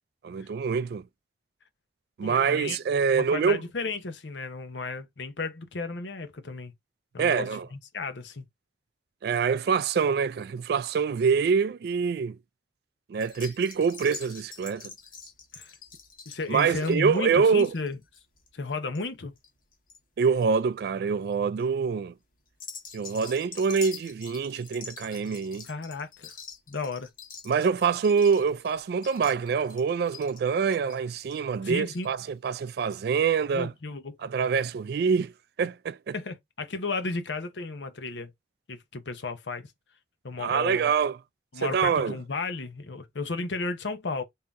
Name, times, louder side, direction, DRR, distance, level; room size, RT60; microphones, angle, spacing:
voice 1, 0.2-1.0 2.2-3.6 7.2-7.7 9.2-12.4 13.1-14.9 16.5-17.7 20.2-22.1 22.9-25.7 27.5-33.7 34.2-35.3 35.6-36.1 40.4-41.2 41.6-42.2, right 6 dB, 60° right, 0.3 m, -25 dB
voice 2, 2.2-2.8 3.1-6.7 7.1-8.4 15.5-15.7 16.3-18.0 18.5-19.3 25.6-26.3 26.7-27.1 31.6-32.1 33.5-34.2 36.1-38.3 38.7-39.7 40.2-40.9 41.5-44.2, left 3 dB, 90° left, 0.8 m, -33 dB
sound 1, 13.2-20.0 20.3-20.8 21.3-21.6 22.5-32.3 32.6-32.7 32.9-33.0, left 6 dB, 50° left, 1.2 m, -46 dB
3.7 x 2.8 x 3.4 m
head